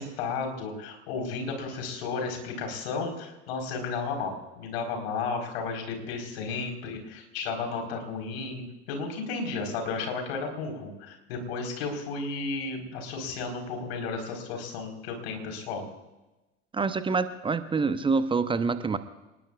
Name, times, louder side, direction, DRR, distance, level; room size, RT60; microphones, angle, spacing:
voice 1, 0.0-8.6 8.9-15.9, left 4 dB, 55° left, 3 dB, 4.4 m, -33 dB
voice 2, 16.7-19.0, right 4 dB, 15° right, 12 dB, 0.8 m, -26 dB
28.0 x 20.0 x 2.4 m, 1.1 s
figure-of-eight pair, 80°, 36 cm